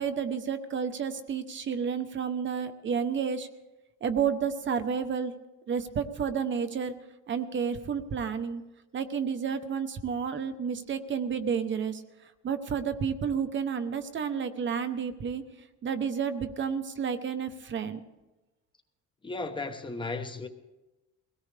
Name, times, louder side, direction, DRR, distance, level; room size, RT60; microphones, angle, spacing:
voice 1, 0.0-3.5 4.0-5.3 5.7-7.0 7.3-8.6 8.9-15.4 15.8-18.0, right 6 dB, 35° right, 0.9 m, -31 dB
voice 2, 19.2-20.5, left 3 dB, 15° left, 1.0 m, -35 dB
23.0 x 17.5 x 3.4 m
cardioid pair, 170°, 31 cm